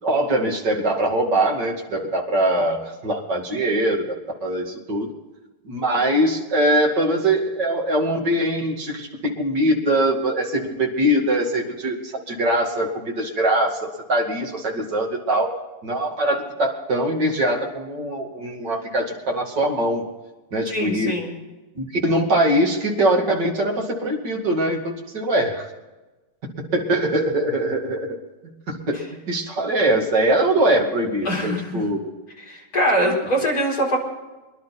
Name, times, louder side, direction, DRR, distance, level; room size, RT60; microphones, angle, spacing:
voice 1, 0.0-5.1 5.6-15.5 15.8-20.0 20.5-21.2 21.8-25.7 26.6-28.1 28.7-29.0 29.3-32.0 33.0-33.1, right 1 dB, 35° right, 0 dB, 2.4 m, -22 dB
voice 2, 20.7-21.3 31.2-31.8 32.5-34.0, equal, 25° left, -3 dB, 4.4 m, -22 dB
23.5 x 11.5 x 4.2 m, 1.1 s
omnidirectional pair, 4.1 m